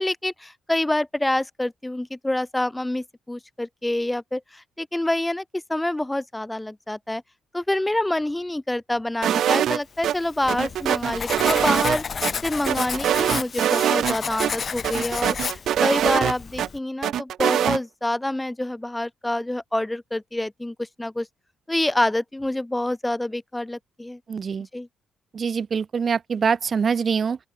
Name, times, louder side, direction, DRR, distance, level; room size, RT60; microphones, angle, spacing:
voice 1, 0.0-7.2 7.5-12.0 12.4-21.3 21.7-24.2 24.7-24.9, left 1 dB, 10° left, 1.0 m, -27 dB
sound 1, 9.2-10.1 10.5-12.3 12.7-14.1 14.4-14.5 14.8-16.7 17.0-17.8, right 10 dB, 70° right, 1.0 m, -23 dB
Writing, 10.1-16.8, left 6 dB, 45° left, 4.5 m, -32 dB
voice 2, 24.3-24.7 25.3-27.4, right 6 dB, 45° right, 0.4 m, -24 dB
open air
cardioid pair, 90°, 0 cm